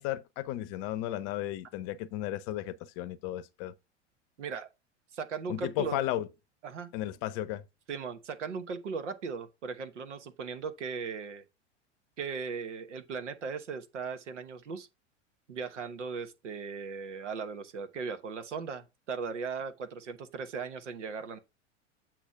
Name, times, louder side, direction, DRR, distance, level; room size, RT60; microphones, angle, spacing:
voice 1, 0.0-3.7 5.5-6.3 6.9-7.6, left 13 dB, 45° left, 0.7 m, -34 dB
voice 2, 4.4-4.7 5.1-6.1 6.6-6.9 7.9-11.4 12.2-14.9 15.5-21.4, right 5 dB, 75° right, 1.1 m, -38 dB
8.1 x 3.0 x 5.8 m
figure-of-eight pair, 90°, 36 cm